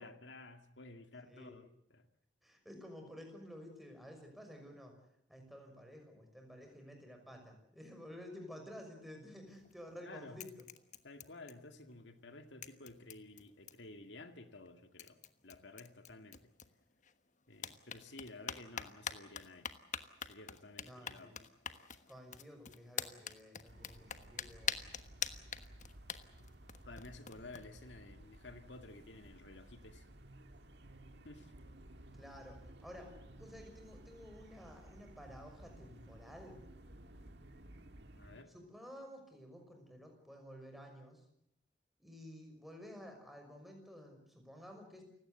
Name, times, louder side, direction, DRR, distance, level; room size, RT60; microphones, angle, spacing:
voice 1, 0.0-2.1 10.0-10.4 11.0-16.5 17.5-19.7 20.2-21.3 26.9-30.0 31.2-31.5 38.2-38.5, left 2 dB, 80° left, 8 dB, 2.2 m, -53 dB
voice 2, 1.2-1.6 2.4-4.9 5.3-10.5 20.8-21.4 22.1-24.8 32.1-36.6 38.5-41.2 42.0-45.0, equal, ahead, 3 dB, 6.1 m, -52 dB
sound 1, 9.5-10.0 10.4-11.9 12.2-12.3 12.6-14.0 14.7-14.8 15.0-17.1 17.5-27.6, left 8 dB, 45° left, 1.3 m, -45 dB
sound 2, 23.7-38.4, right 1 dB, 65° right, 2.0 m, -56 dB
29.5 x 17.0 x 8.2 m, 0.72 s
head